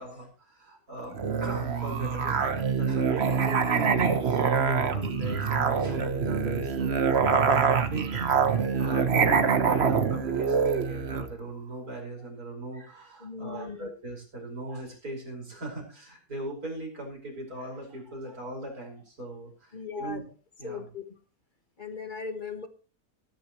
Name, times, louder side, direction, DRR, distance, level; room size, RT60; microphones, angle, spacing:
voice 1, 0.0-7.2 7.5-20.2 20.6-20.8, right 1 dB, 90° right, 0 dB, 5.8 m, -39 dB
Musical instrument, 1.1-11.3, right 6 dB, 50° right, 1.3 m, -25 dB
voice 2, 13.2-13.9 19.7-20.3 20.6-21.1 21.8-22.7, left 5 dB, 35° left, 7 dB, 1.5 m, -38 dB
19.0 x 10.5 x 3.1 m, 0.35 s
omnidirectional pair, 1.5 m